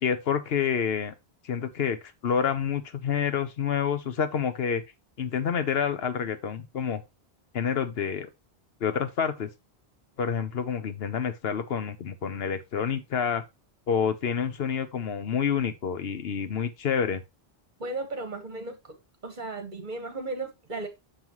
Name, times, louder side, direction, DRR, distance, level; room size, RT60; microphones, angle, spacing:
voice 1, 0.0-1.1 1.4-2.0 2.2-4.8 5.2-7.0 7.5-8.3 8.8-9.5 10.2-13.4 13.9-17.2, left 7 dB, 75° left, 1.0 m, -28 dB
voice 2, 17.8-18.8 19.2-20.9, right 2 dB, 50° right, 1.5 m, -35 dB
6.7 x 5.5 x 3.0 m
omnidirectional pair, 1.1 m